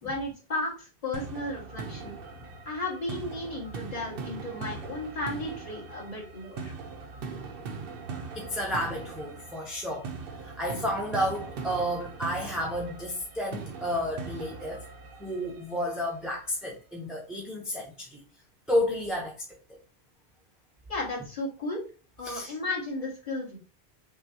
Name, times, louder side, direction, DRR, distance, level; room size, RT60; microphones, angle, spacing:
voice 1, 0.0-2.1 2.6-6.7 20.9-21.8 22.2-23.6, left 2 dB, 35° left, 1.6 m, -34 dB
sound 1, 1.1-16.1, right 4 dB, 65° right, 0.8 m, -40 dB
voice 2, 8.3-14.8 15.2-18.2 18.7-19.3 22.2-22.5, equal, ahead, 0.5 m, -31 dB
5.5 x 2.3 x 2.7 m
omnidirectional pair, 1.1 m